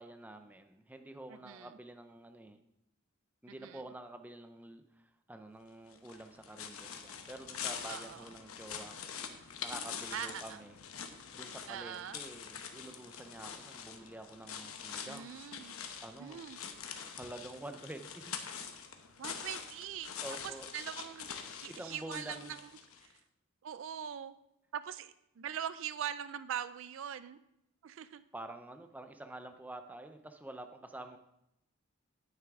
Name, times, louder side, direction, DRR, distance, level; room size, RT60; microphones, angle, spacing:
voice 1, 0.0-2.6 3.4-10.7 11.3-15.3 16.0-16.5 17.1-18.3 20.2-20.7 21.7-22.6 28.3-31.2, right 1 dB, 10° right, 7 dB, 0.5 m, -48 dB
voice 2, 1.3-1.7 3.6-3.8 7.9-8.3 10.1-10.6 11.7-12.2 15.1-15.7 16.2-16.6 19.2-20.1 20.4-22.7 23.0-23.2 23.6-24.4 24.7-27.4 27.8-28.2, right 9 dB, 65° right, 15 dB, 0.3 m, -42 dB
sound 1, 5.9-23.1, left 7 dB, 90° left, 0.9 m, -45 dB
9.4 x 9.0 x 3.6 m, 0.81 s
head